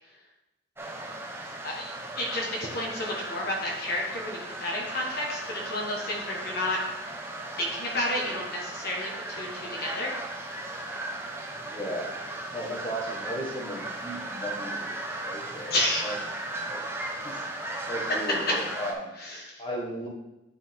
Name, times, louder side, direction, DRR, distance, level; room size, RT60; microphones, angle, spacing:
sound 1, 0.8-18.9, right 2 dB, 10° right, 0.8 m, -37 dB
voice 1, 1.6-6.8 7.6-10.6 15.7-16.2 19.2-19.6, left 1 dB, 50° left, -3 dB, 1.4 m, -31 dB
voice 2, 11.7-12.1 12.5-15.0 15.2-16.2 16.7-16.8 17.2-17.5 17.9-19.1 19.6-20.1, equal, 25° left, -2 dB, 1.5 m, -35 dB
9.3 x 4.9 x 3.7 m, 0.96 s
head